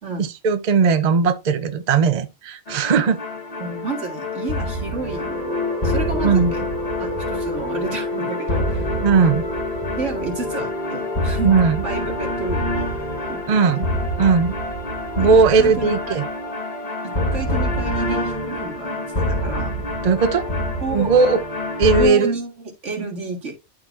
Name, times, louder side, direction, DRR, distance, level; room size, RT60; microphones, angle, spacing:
voice 1, 0.4-3.2 6.2-6.5 9.0-9.4 11.4-11.8 13.5-13.9 14.2-14.5 15.2-16.3 20.0-20.4 20.9-21.4 21.8-22.3, right 5 dB, 40° right, 0.7 m, -17 dB
sound 1, 2.7-22.1, left 1 dB, 35° left, 1.5 m, -26 dB
voice 2, 3.6-6.6 7.0-8.9 9.2-9.3 10.0-11.5 11.8-12.7 13.3-13.4 13.7-13.8 15.2-16.2 17.0-19.7 20.8-21.1 22.0-23.5, right 3 dB, 90° right, 2.3 m, -30 dB
sound 2, 5.0-18.9, left 2 dB, 60° right, 1.5 m, -31 dB
11.5 x 3.9 x 2.6 m
omnidirectional pair, 1.2 m